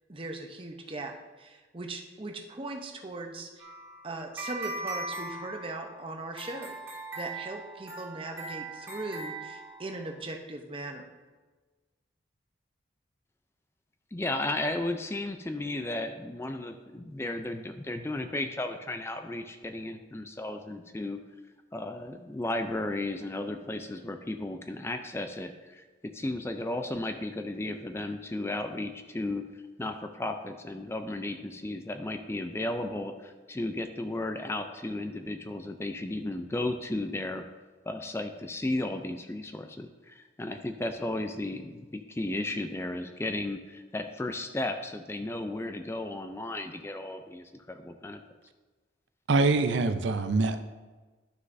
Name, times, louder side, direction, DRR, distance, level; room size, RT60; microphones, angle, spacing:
voice 1, 0.1-3.7 4.0-6.8 7.1-11.0, right 2 dB, 30° right, 3 dB, 0.7 m, -39 dB
sound 1, 3.6-10.1, right 2 dB, 15° right, 1.7 m, -40 dB
voice 2, 14.1-21.2 21.7-29.4 29.8-37.5 37.9-48.2, left 2 dB, 15° left, 7 dB, 0.3 m, -34 dB
voice 3, 49.3-50.7, right 3 dB, 75° right, 9 dB, 0.5 m, -24 dB
11.5 x 6.4 x 2.6 m, 1.3 s
head